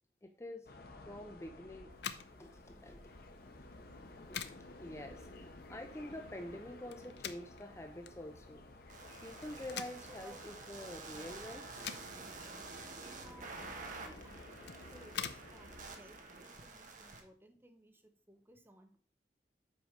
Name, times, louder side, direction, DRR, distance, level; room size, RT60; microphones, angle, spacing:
voice 1, 0.2-0.7 1.0-1.9 2.4-3.0 4.3-4.5 4.8-8.6 9.2-11.6, left 1 dB, 15° left, 5 dB, 0.6 m, -47 dB
sound 1, 0.7-16.0, left 2 dB, 60° left, 1.1 m, -54 dB
sound 2, 1.9-16.9, left 8 dB, 75° left, 0.7 m, -49 dB
sound 3, 8.9-17.2, right 3 dB, 45° right, 1.3 m, -49 dB
voice 2, 10.1-10.4 11.2-11.4 13.0-19.0, right 1 dB, 15° right, 6 dB, 0.9 m, -60 dB
8.2 x 4.9 x 5.0 m, 0.43 s
head